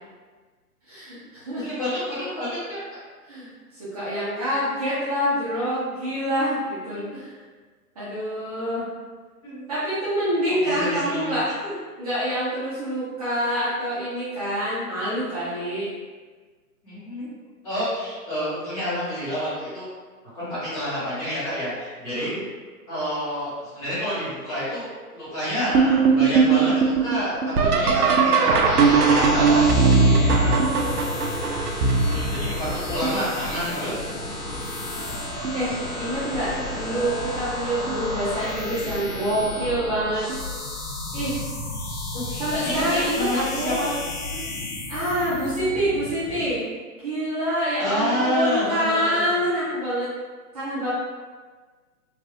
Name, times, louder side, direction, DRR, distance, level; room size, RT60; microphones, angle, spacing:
voice 1, 0.9-1.8 3.3-7.3 8.0-8.8 9.7-11.5 12.0-15.9 22.1-22.4 27.8-27.9 30.3-30.8 34.9-35.0 35.5-35.7 36.0-40.3 41.1-41.4 42.4-43.8 44.9-46.6 47.0-50.1 50.5-50.9, equal, 25° right, -13 dB, 0.7 m, -26 dB
voice 2, 1.6-2.8 6.9-7.2 9.4-9.6 10.5-11.7 16.8-17.3 17.6-19.9 20.3-22.3 22.9-24.9 25.1-30.0 32.0-33.9 36.4-36.8 42.1-44.0 44.3-44.4 47.8-49.4, equal, 25° left, -11 dB, 1.3 m, -29 dB
sound 1, 25.7-33.4 34.1-34.6 35.1-35.7 37.0-37.1 37.8-38.1 40.3-40.4 42.7-42.8, right 4 dB, 75° right, 0.6 m, -20 dB
sound 2, 28.6-46.5, left 1 dB, 70° left, 0.9 m, -32 dB
3.2 x 2.5 x 2.4 m, 1.4 s
hypercardioid pair, 145°, 47 cm